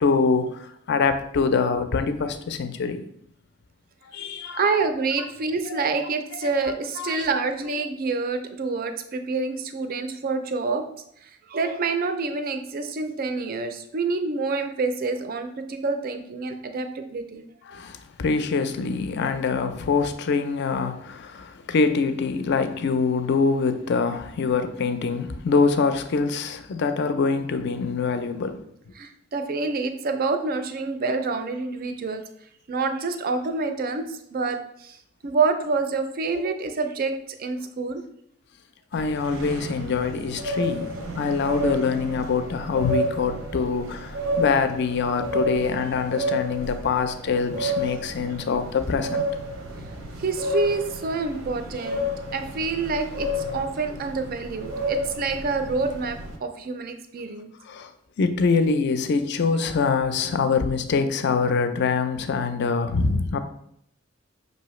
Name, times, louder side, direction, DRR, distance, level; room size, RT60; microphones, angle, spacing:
voice 1, 0.0-3.0 4.1-4.7 5.7-5.8 6.4-6.5 7.0-7.2 17.7-28.6 38.9-49.3 49.8-49.9 57.7-57.9 58.2-63.4, left 4 dB, 55° left, 0.4 m, -24 dB
voice 2, 4.5-10.8 11.2-17.5 29.0-32.2 32.7-35.0 35.2-37.1 37.4-38.0 50.2-52.0 52.3-57.5, right 4 dB, 45° right, 0.4 m, -27 dB
sound 1, 38.9-56.4, equal, 80° right, 0.7 m, -31 dB
5.5 x 2.7 x 3.0 m
head